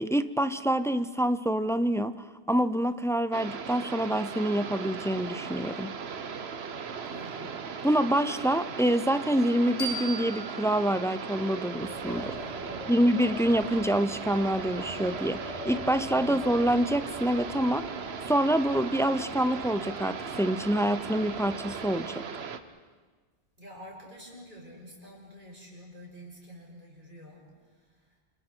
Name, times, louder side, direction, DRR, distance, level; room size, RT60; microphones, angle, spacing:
voice 1, 0.0-5.9 7.8-12.4 12.9-17.9 18.2-22.2, right 1 dB, 5° left, 12 dB, 0.4 m, -26 dB
sound 1, 3.3-22.6, right 6 dB, 85° right, 1.2 m, -38 dB
voice 2, 7.0-7.6 12.7-13.1 16.1-16.4 23.6-27.4, equal, 55° right, -3 dB, 6.5 m, -48 dB
sound 2, 9.8-12.6, right 1 dB, 60° left, 3.8 m, -40 dB
Wind, 11.7-22.1, equal, 35° left, 6.7 m, -44 dB
28.5 x 28.0 x 4.5 m, 1.4 s
omnidirectional pair, 1.0 m